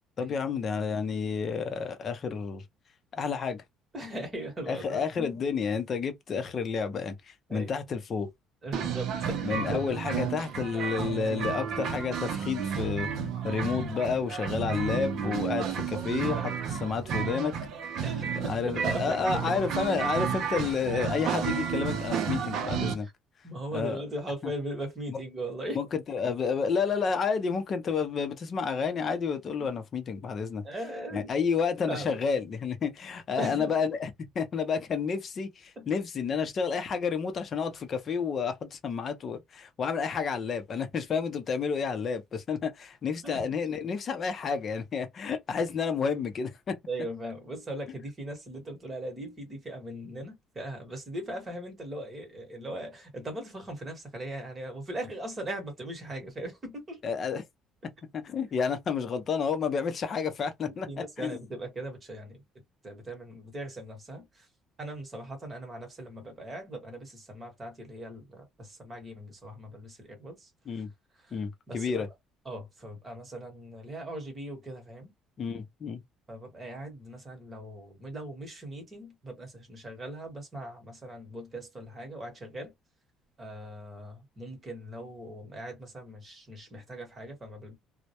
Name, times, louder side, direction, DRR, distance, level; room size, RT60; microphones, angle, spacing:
voice 1, 0.2-2.6 3.1-3.6 4.7-8.3 9.4-13.1 13.4-17.5 18.5-23.1 23.7-24.0 25.1-25.2 25.7-30.6 31.1-46.8 57.0-57.4 58.1-60.9 61.2-61.4 70.7-70.9 71.3-72.1 75.4-76.0, left 5 dB, 35° left, 0.5 m, -30 dB
voice 2, 3.9-5.4 7.5-7.7 8.6-9.8 18.0-19.7 22.9-23.1 23.4-25.8 26.2-26.3 29.6-29.7 30.6-31.3 31.9-32.2 33.4-33.7 35.8-35.9 43.2-43.4 46.9-57.0 60.6-62.4 62.8-64.5 64.8-70.8 71.1-72.0 72.4-75.1 76.3-82.7 83.4-87.7, right 1 dB, 20° right, 1.1 m, -39 dB
sound 1, 8.7-22.9, right 7 dB, 60° right, 0.5 m, -32 dB
2.2 x 2.1 x 2.7 m
cardioid pair, 150°, 0 cm